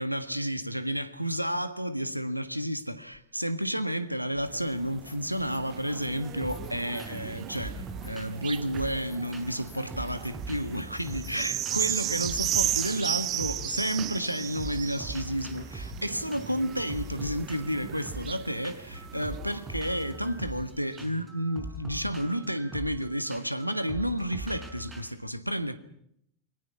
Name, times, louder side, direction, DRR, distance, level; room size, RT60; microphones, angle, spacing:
voice 1, 0.0-25.8, equal, 90° right, 1.5 m, -31 dB
sound 1, 3.1-3.2 4.8-5.7 6.0-13.5, left 10 dB, 30° left, 2.3 m, -57 dB
sound 2, 4.5-20.3 20.9-21.0, right 13 dB, 35° right, 0.9 m, -35 dB
sound 3, 6.4-6.7 7.0-7.3 7.6-9.6 9.9-11.4 11.6-12.0 12.2-14.3 14.6-25.0, right 1 dB, 15° right, 6.3 m, -42 dB
29.0 x 23.0 x 5.8 m
figure-of-eight pair, 90°, 0 cm